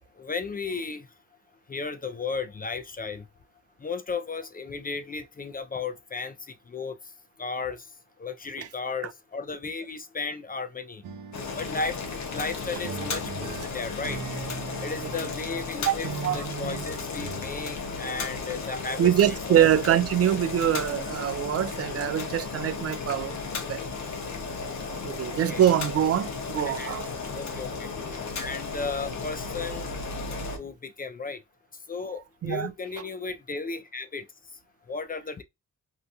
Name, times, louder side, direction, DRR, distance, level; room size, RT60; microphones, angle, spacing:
voice 1, 0.1-1.1 1.7-3.3 3.8-7.1 7.4-7.9 8.2-11.0 11.6-12.0 12.3-14.2 14.8-16.1 16.3-19.1 19.5-19.7 25.3-25.6 26.6-27.0 27.3-27.9 28.4-29.9 30.6-31.4 31.9-34.3 34.9-35.4, left 4 dB, 30° left, 0.4 m, -34 dB
sound 1, 11.0-12.5 12.8-15.7 16.0-17.4, right 6 dB, 80° right, 0.7 m, -39 dB
Boiling, 11.3-30.6, left 4 dB, 60° left, 0.9 m, -34 dB
voice 2, 19.0-23.4 23.7-23.8 24.8-27.1 32.4-32.7, right 10 dB, 50° right, 0.4 m, -24 dB
2.7 x 2.2 x 2.6 m
supercardioid pair, 50°, 31 cm